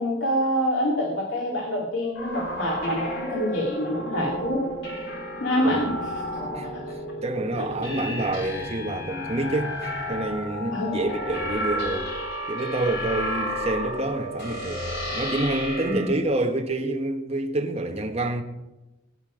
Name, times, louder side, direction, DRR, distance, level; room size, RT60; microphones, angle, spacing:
voice 1, 0.0-4.6 5.4-6.2 7.5-7.7 10.7-10.9 15.8-16.1, equal, 85° left, 2.5 m, -26 dB
sound 1, 2.1-16.1, equal, 60° left, 4.1 m, -32 dB
voice 2, 7.2-12.1 12.5-18.4, right 2 dB, 35° right, 1.4 m, -28 dB
21.0 x 9.7 x 5.1 m
head